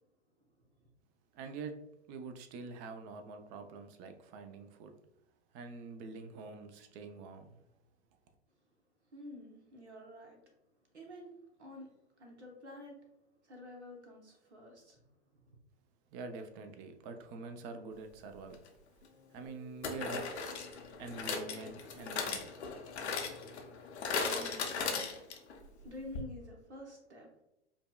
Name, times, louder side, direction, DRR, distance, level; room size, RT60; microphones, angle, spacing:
voice 1, 1.3-1.7 2.1-4.9 5.5-7.6 16.1-18.6 19.3-20.3 21.0-22.5, right 4 dB, 35° right, 7 dB, 0.5 m, -45 dB
voice 2, 9.1-10.4 10.9-11.9 12.2-13.0 13.4-15.0 15.3-15.4 24.1-25.2 25.8-27.4, left 1 dB, 85° right, 1 dB, 0.9 m, -49 dB
sound 1, 18.5-18.7 19.8-25.6 25.8-25.9 26.1-26.2, left 5 dB, 80° left, 0.7 m, -37 dB
5.1 x 2.1 x 2.3 m, 0.89 s
hypercardioid pair, 100°, 33 cm